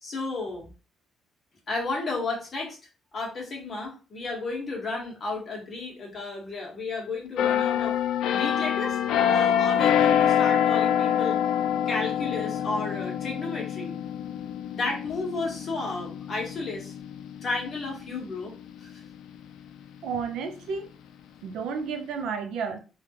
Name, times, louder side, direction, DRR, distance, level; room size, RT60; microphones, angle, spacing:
voice 1, 0.0-0.6 1.7-2.8 3.1-8.0 8.3-9.0 9.3-11.4 11.9-14.0 14.7-16.9 17.4-18.5 18.8-19.0, left 3 dB, 35° left, 1.1 m, -32 dB
sound 1, 7.4-18.9 19.3-19.6, left 9 dB, 90° left, 0.3 m, -26 dB
voice 2, 20.0-20.9 21.4-22.8, right 5 dB, 80° right, 0.6 m, -31 dB
3.4 x 2.3 x 2.8 m
cardioid pair, 165°, 0 cm